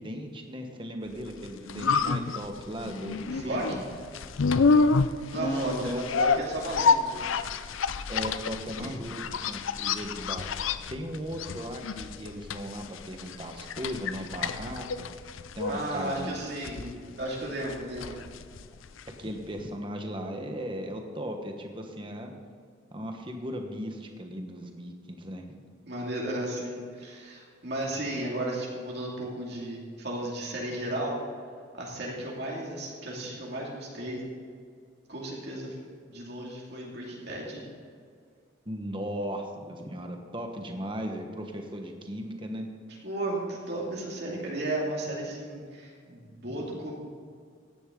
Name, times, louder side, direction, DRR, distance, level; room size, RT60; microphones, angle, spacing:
voice 1, 0.0-3.8 5.3-6.3 8.1-10.5 10.9-15.1 15.5-16.3 16.8-17.0 19.2-22.3 22.9-25.4 38.7-42.7, equal, 25° right, 4 dB, 1.3 m, -37 dB
sound 1, 1.3-19.3 19.6-19.7, left 4 dB, 85° left, 0.5 m, -29 dB
voice 2, 3.3-3.9 5.3-7.2 8.8-8.9 15.7-16.8 17.2-18.3 25.8-31.2 31.7-34.3 35.1-35.7 36.1-37.6 43.0-47.0, right 1 dB, 55° right, -3 dB, 2.5 m, -34 dB
15.5 x 10.5 x 3.8 m, 2.1 s
head